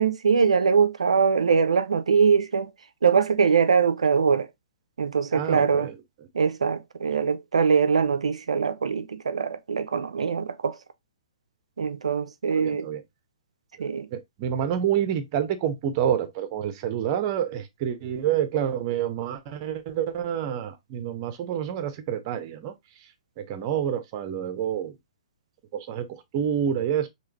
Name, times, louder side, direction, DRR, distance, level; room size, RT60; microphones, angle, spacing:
voice 1, 0.0-2.7 3.0-4.5 5.0-5.9 6.3-10.8 11.8-12.9 13.8-14.1, right 6 dB, 75° right, 0.5 m, -22 dB
voice 2, 5.3-5.9 12.5-13.0 13.8-22.7 23.4-24.9 25.7-27.1, right 9 dB, 40° right, 0.9 m, -28 dB
4.8 x 3.0 x 2.9 m
figure-of-eight pair, 120°, 3 cm